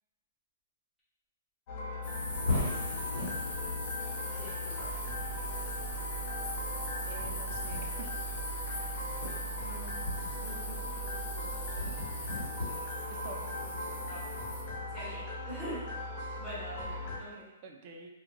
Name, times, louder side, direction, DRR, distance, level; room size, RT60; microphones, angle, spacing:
sound 1, 1.7-17.2, equal, 35° left, 0.5 m, -38 dB
sound 2, 2.0-14.6, left 2 dB, 55° left, 1.1 m, -38 dB
voice 1, 4.3-4.9 8.9-10.0 10.4-12.1 13.0-13.7 14.1-14.3 14.9-15.8 16.4-17.5, right 1 dB, ahead, -13 dB, 1.2 m, -46 dB
voice 2, 7.0-8.1 13.1-13.5 17.6-18.1, right 4 dB, 35° right, 2 dB, 0.3 m, -47 dB
2.4 x 2.2 x 2.9 m, 1.0 s
hypercardioid pair, 155°, 0 cm